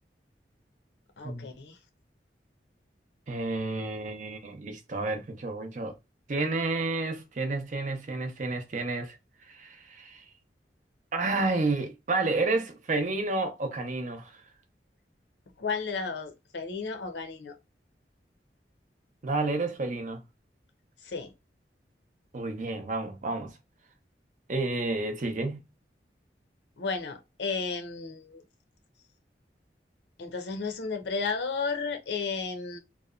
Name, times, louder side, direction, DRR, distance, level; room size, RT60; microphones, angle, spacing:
voice 1, 1.2-1.8 15.6-17.6 21.0-21.3 26.8-28.4 30.2-32.8, left 4 dB, 75° left, 0.6 m, -33 dB
voice 2, 3.3-5.9 6.3-9.2 9.5-10.2 11.1-14.4 19.2-20.2 22.3-23.6 24.5-25.6, right 3 dB, 45° right, 0.5 m, -30 dB
2.7 x 2.1 x 2.3 m
head